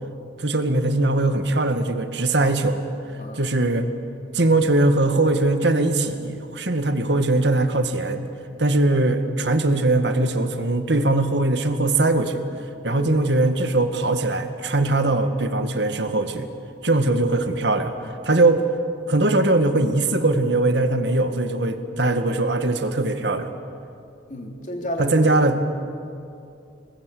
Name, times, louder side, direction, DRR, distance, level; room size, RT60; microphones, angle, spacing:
voice 1, 0.4-2.9 3.3-3.9 4.3-8.2 8.6-12.4 12.8-16.5 16.8-18.6 19.1-23.5 25.0-25.6, right 2 dB, 65° right, 8 dB, 1.8 m, -21 dB
voice 2, 12.9-13.3 24.3-25.4, left 1 dB, 40° left, 2 dB, 3.4 m, -31 dB
27.0 x 20.0 x 8.5 m, 2.5 s
head